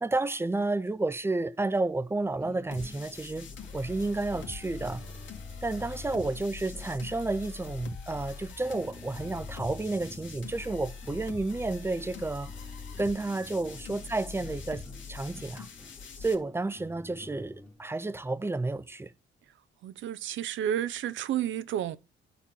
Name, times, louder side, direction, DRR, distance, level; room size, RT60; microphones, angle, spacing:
voice 1, 0.0-3.5 3.7-5.0 5.6-12.5 13.0-14.8 15.1-15.7 16.2-19.1, right 2 dB, 10° right, 0.6 m, -31 dB
sound 1, 2.4-17.8, left 2 dB, 5° left, 1.6 m, -50 dB
sound 2, 2.7-16.3, left 5 dB, 75° left, 1.9 m, -43 dB
voice 2, 19.8-22.0, right 10 dB, 75° right, 0.7 m, -31 dB
11.0 x 4.4 x 7.0 m
cardioid pair, 90°, 20 cm